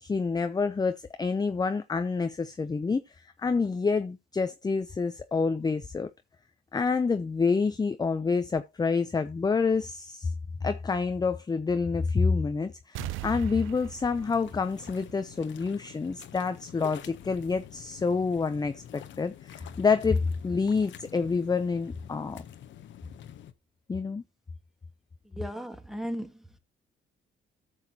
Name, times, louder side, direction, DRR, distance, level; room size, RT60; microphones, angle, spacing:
voice 1, 0.0-6.1 6.7-10.3 10.6-22.4 23.9-24.2, left 4 dB, 20° left, 0.6 m, -28 dB
sound 1, 12.9-15.6 15.9-16.0, right 18 dB, 85° right, 0.4 m, -40 dB
sound 2, 14.1-23.5, left 10 dB, 70° left, 0.9 m, -47 dB
voice 2, 25.2-26.6, equal, ahead, 1.5 m, -37 dB
14.0 x 6.4 x 2.8 m
cardioid pair, 90°, 20 cm